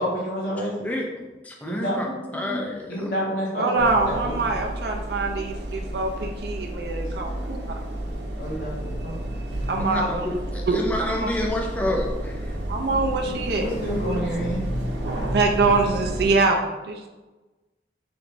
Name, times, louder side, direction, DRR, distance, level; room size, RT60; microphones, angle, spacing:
voice 1, 0.0-0.8 1.6-2.6 2.9-4.5 5.2-5.4 6.9-7.6 8.4-9.2 13.6-14.6, equal, 55° left, -4 dB, 1.2 m, -29 dB
voice 2, 0.8-3.1 9.8-12.5, left 1 dB, 10° left, -1 dB, 0.4 m, -29 dB
voice 3, 3.5-7.8 9.7-10.3 10.7-10.8 11.1-11.3 12.7-14.2 15.2-17.1, right 3 dB, 65° right, 2 dB, 0.5 m, -24 dB
sound 1, 3.8-16.3, right 1 dB, 90° right, 0.8 m, -31 dB
3.3 x 3.1 x 4.0 m, 1.1 s
head